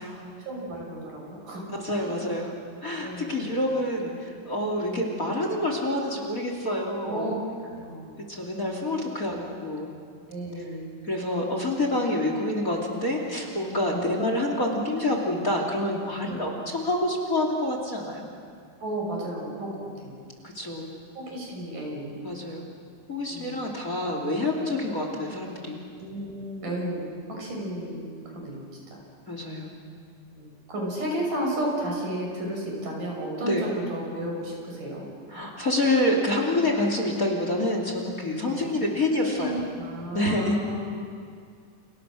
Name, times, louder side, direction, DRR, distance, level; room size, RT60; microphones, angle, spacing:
voice 1, 0.0-2.2 3.0-3.5 4.9-5.1 7.0-8.2 9.2-9.5 10.3-10.9 13.9-14.1 16.2-16.5 18.8-20.2 21.2-22.2 23.3-23.6 25.9-29.0 30.3-35.1 38.4-38.7 39.3-40.9, right 1 dB, 75° right, -1 dB, 8.0 m, -33 dB
voice 2, 1.8-2.5 2.8-7.3 8.3-9.4 9.6-9.9 11.0-18.3 20.4-20.9 22.2-22.7 23.1-25.8 29.3-29.8 33.4-33.7 35.3-39.6 40.1-40.6, left 1 dB, 25° left, 1 dB, 3.0 m, -27 dB
30.0 x 29.5 x 6.4 m, 2.3 s
omnidirectional pair, 3.8 m